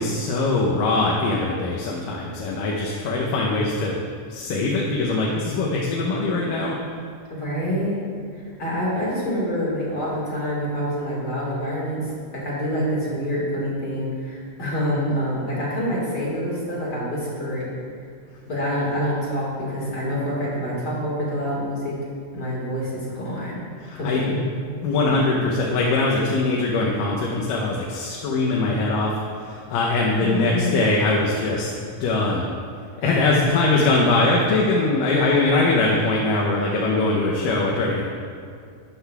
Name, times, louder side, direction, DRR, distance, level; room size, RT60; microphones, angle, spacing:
voice 1, 0.0-4.0 4.3-6.8 23.8-24.3 24.8-29.1 29.4-32.5 33.0-38.0, left 3 dB, 85° left, -2 dB, 2.5 m, -22 dB
voice 2, 7.3-8.0 8.6-17.7 18.5-22.0 22.3-23.6 24.0-24.5 30.2-30.9 33.0-33.4, equal, 35° left, -6 dB, 2.0 m, -26 dB
12.5 x 10.0 x 2.4 m, 2.3 s
omnidirectional pair, 3.8 m